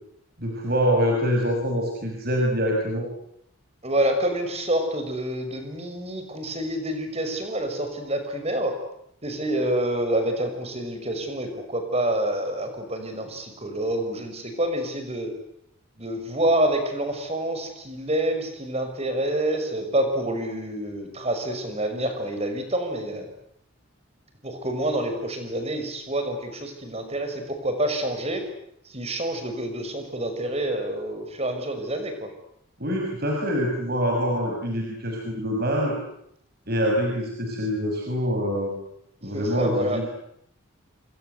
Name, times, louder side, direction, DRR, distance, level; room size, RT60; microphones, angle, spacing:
voice 1, 0.4-3.1 32.8-35.9 36.7-38.7 39.2-40.1, equal, 45° right, 0 dB, 6.4 m, -25 dB
voice 2, 3.8-8.7 9.2-15.3 16.0-23.3 24.4-28.4 28.9-32.3 39.3-40.0, right 1 dB, 30° right, 7 dB, 6.0 m, -27 dB
28.5 x 25.5 x 8.1 m, 0.74 s
head